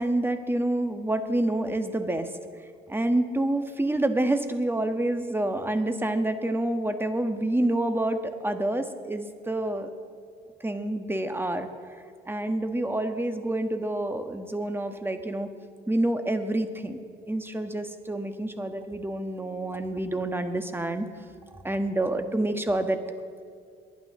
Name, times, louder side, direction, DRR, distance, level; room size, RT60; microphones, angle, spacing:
voice 1, 0.0-2.3 2.9-9.9 10.6-11.7 12.3-15.5 15.9-17.0 17.3-21.1 21.6-23.0, right 1 dB, 10° right, 7 dB, 1.4 m, -27 dB
28.5 x 11.0 x 3.8 m, 2.4 s
cardioid pair, 90°, 20 cm